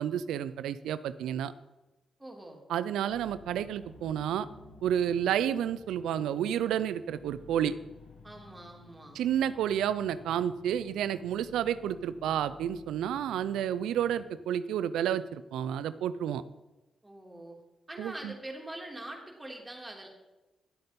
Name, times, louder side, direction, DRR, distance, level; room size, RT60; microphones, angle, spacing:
voice 1, 0.0-1.5 2.7-4.5 4.8-7.7 9.1-16.4 18.0-18.3, right 10 dB, 85° right, 15 dB, 0.4 m, -30 dB
voice 2, 2.2-2.6 8.2-9.2 17.0-17.6 17.9-20.1, right 1 dB, 15° right, 0 dB, 3.1 m, -44 dB
sound 1, 3.1-14.3, left 2 dB, 75° left, 2.1 m, -54 dB
11.5 x 7.8 x 5.3 m, 1.1 s
supercardioid pair, 50°, 0 cm